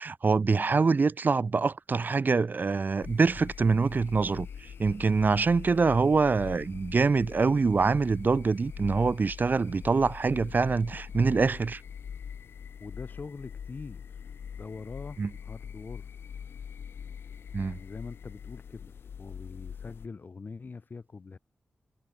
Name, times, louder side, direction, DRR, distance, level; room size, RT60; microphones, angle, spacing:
voice 1, 0.0-11.8 15.2-15.3 17.5-17.8, right 4 dB, 55° right, 2.6 m, -25 dB
sound 1, 3.0-20.1, left 7 dB, 90° left, 1.8 m, -43 dB
voice 2, 12.8-16.1 17.6-21.4, left 4 dB, 55° left, 7.7 m, -43 dB
cardioid pair, 60°, 4 cm